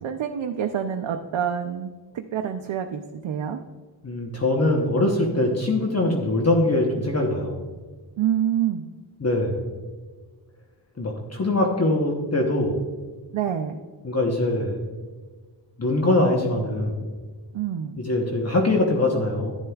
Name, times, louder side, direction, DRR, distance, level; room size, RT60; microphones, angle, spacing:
voice 1, 0.0-3.6 8.2-8.9 13.3-13.8 17.5-18.0, right 9 dB, 85° right, 4 dB, 0.6 m, -27 dB
voice 2, 4.0-7.6 9.2-9.6 11.0-12.8 14.0-14.8 15.8-16.9 18.0-19.6, left 2 dB, 35° left, 1 dB, 1.0 m, -22 dB
11.0 x 10.0 x 2.3 m, 1.5 s
wide cardioid pair, 110°, 46 cm